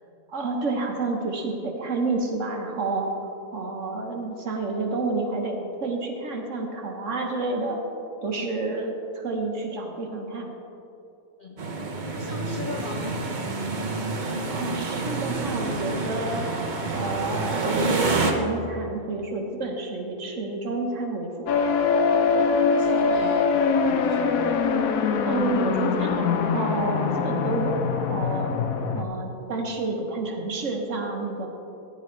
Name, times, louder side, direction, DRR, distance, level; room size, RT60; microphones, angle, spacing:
voice 1, 0.3-7.8 8.2-10.5 14.5-16.5 16.9-21.6 25.2-28.5 28.9-31.5, right 3 dB, 55° right, 1 dB, 1.4 m, -29 dB
sound 1, 11.6-18.3, right 3 dB, 40° right, 0.8 m, -28 dB
voice 2, 12.1-13.4 22.3-24.7, left 3 dB, 50° left, 1 dB, 0.6 m, -38 dB
sound 2, 21.5-29.0, left 5 dB, 70° left, 1.0 m, -23 dB
14.5 x 10.0 x 3.3 m, 2.8 s
omnidirectional pair, 1.7 m